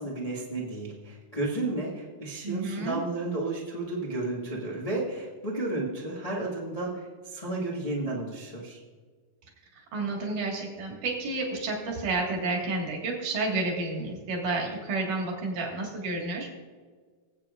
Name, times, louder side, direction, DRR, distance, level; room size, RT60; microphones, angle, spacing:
voice 1, 0.0-8.8, right 2 dB, 60° left, -5 dB, 0.4 m, -32 dB
voice 2, 2.4-3.0 9.8-16.5, right 3 dB, 70° right, 0 dB, 3.3 m, -30 dB
19.5 x 8.3 x 2.5 m, 1.6 s
omnidirectional pair, 3.8 m